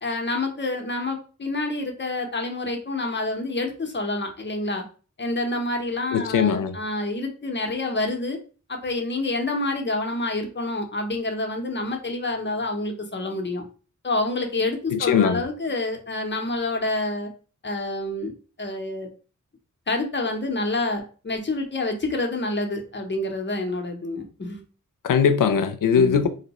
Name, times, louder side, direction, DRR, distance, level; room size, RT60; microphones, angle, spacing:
voice 1, 0.0-4.8 5.2-8.4 8.7-13.6 14.0-17.3 17.6-18.3 18.6-19.1 19.9-24.6 25.9-26.2, left 2 dB, 35° left, 0.7 m, -28 dB
voice 2, 6.1-6.8 14.9-15.4 25.0-26.3, left 7 dB, 85° left, 0.5 m, -20 dB
2.7 x 2.1 x 4.0 m
wide cardioid pair, 105°, 32 cm